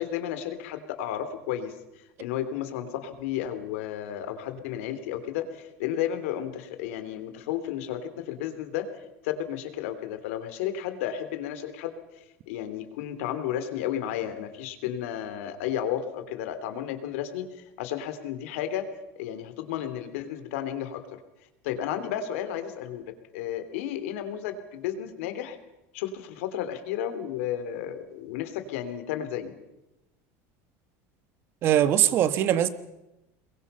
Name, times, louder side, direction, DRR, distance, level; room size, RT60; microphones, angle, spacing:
voice 1, 0.0-8.8 9.2-11.9 12.5-17.4 17.8-18.8 19.1-21.0 21.6-23.0 23.3-25.6 25.9-29.5, left 10 dB, 85° left, 3.2 m, -32 dB
voice 2, 31.6-32.7, right 11 dB, 35° right, 1.2 m, -21 dB
28.0 x 22.0 x 5.7 m
cardioid pair, 180°, 7 cm